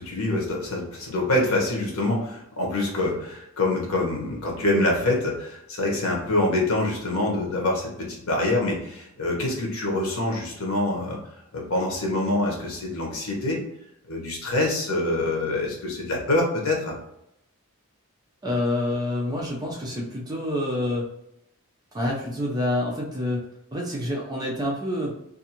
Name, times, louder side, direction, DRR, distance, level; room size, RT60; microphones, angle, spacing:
voice 1, 0.0-13.6 14.1-16.9, left 2 dB, 75° left, -1 dB, 0.9 m, -25 dB
voice 2, 18.4-21.1 21.9-23.4 23.7-25.1, left 1 dB, 20° right, -2 dB, 0.4 m, -27 dB
2.5 x 2.4 x 2.8 m, 0.79 s
head